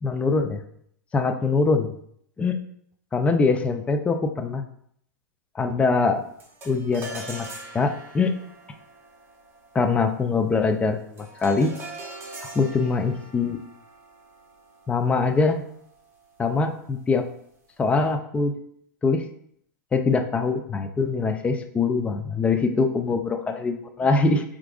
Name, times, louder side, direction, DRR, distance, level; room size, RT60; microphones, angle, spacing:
voice 1, 0.0-0.6 1.1-1.9 2.4-2.6 3.1-4.6 5.6-6.2 6.7-7.5 7.7-8.3 9.7-11.7 12.4-13.6 14.9-15.6 16.4-17.2 17.8-18.5 19.0-19.2 19.9-24.4, left 4 dB, 10° left, 6 dB, 0.3 m, -23 dB
sound 1, 6.4-15.9, right 2 dB, 20° right, 0.8 m, -43 dB
4.4 x 2.4 x 2.4 m, 0.67 s
hypercardioid pair, 110°, 10 cm